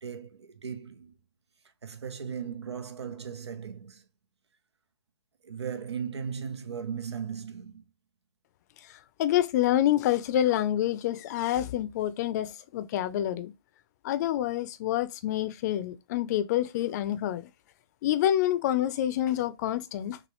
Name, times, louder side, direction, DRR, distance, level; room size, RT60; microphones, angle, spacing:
voice 1, 0.0-1.2 1.8-4.0 5.4-7.8, right 7 dB, 90° right, 0.9 m, -37 dB
voice 2, 8.9-13.5 14.0-17.5 18.0-20.2, left 12 dB, 40° left, 0.5 m, -27 dB
6.3 x 2.4 x 3.1 m
hypercardioid pair, 140°, 14 cm